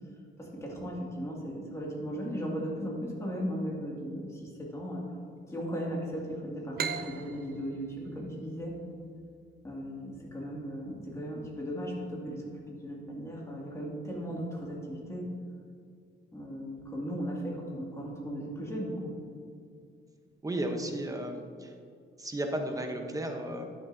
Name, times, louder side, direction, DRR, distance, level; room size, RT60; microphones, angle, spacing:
voice 1, 0.4-5.2 5.5-8.7 9.6-15.2 16.3-19.1, equal, 15° left, -4 dB, 2.2 m, -37 dB
sound 1, 6.8-10.2, right 7 dB, 50° right, 0.5 m, -39 dB
voice 2, 20.4-21.7 22.2-23.7, right 1 dB, 15° right, 4 dB, 0.8 m, -34 dB
11.5 x 7.0 x 2.7 m, 2.2 s
cardioid pair, 115°, 20 cm